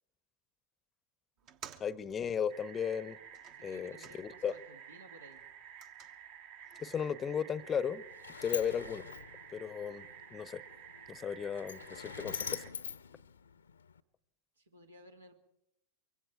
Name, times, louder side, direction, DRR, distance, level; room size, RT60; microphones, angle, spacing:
sound 1, 1.4-4.8 5.1-7.1, right 7 dB, 35° right, 1.2 m, -56 dB
voice 1, 1.8-3.2 3.6-4.6 6.8-8.0 8.4-9.1 9.5-10.6 11.1-12.6, left 7 dB, 20° left, 0.8 m, -35 dB
sound 2, 2.5-12.7, right 8 dB, 55° right, 2.3 m, -52 dB
voice 2, 3.5-5.4 14.6-15.3, equal, 75° right, 2.3 m, -56 dB
Sliding door, 7.6-14.0, left 7 dB, 70° left, 0.8 m, -45 dB
24.5 x 23.5 x 4.7 m
figure-of-eight pair, 90°, 0 cm